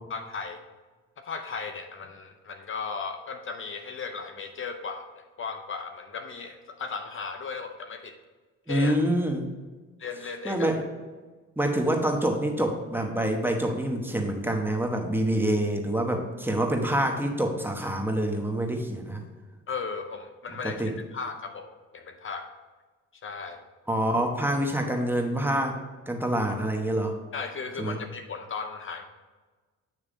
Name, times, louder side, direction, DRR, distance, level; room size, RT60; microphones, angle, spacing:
voice 1, 0.1-0.6 1.2-8.2 8.7-9.0 10.0-10.7 19.7-21.7 21.9-22.5 23.2-23.7 27.3-29.1, left 5 dB, 45° left, 6 dB, 0.6 m, -36 dB
voice 2, 8.7-9.4 10.4-10.8 11.6-19.2 20.6-20.9 23.9-25.8 26.1-27.1 27.8-28.0, right 1 dB, 5° right, 2 dB, 1.0 m, -26 dB
9.0 x 3.2 x 5.0 m, 1.3 s
cardioid pair, 90°, 30 cm